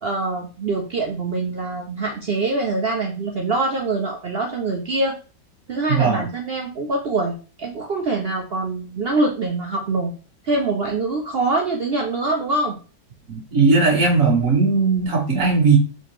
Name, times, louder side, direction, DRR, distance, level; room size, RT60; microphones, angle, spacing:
voice 1, 0.0-5.2 5.7-10.1 10.4-12.8, right 3 dB, 75° right, 2 dB, 0.5 m, -24 dB
voice 2, 13.3-15.8, right 4 dB, 50° right, -1 dB, 1.8 m, -17 dB
4.3 x 3.9 x 3.1 m, 0.35 s
omnidirectional pair, 1.9 m